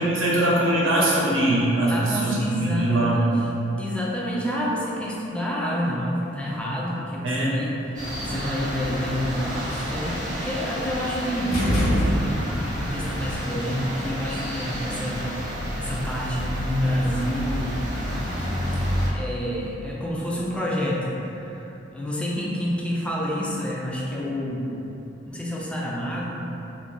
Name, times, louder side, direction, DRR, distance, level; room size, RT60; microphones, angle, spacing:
voice 1, 0.0-3.4 7.2-7.6, right 1 dB, 80° right, -6 dB, 0.7 m, -22 dB
voice 2, 1.9-3.4 3.8-15.4 15.8-17.9 18.8-21.7 21.9-24.7 25.3-26.5, equal, 5° left, -5 dB, 0.3 m, -28 dB
sound 1, 7.9-19.1, equal, 40° right, 0.8 m, -30 dB
sound 2, 11.5-12.7, equal, 75° left, 0.8 m, -23 dB
2.5 x 2.2 x 3.7 m, 3.0 s
head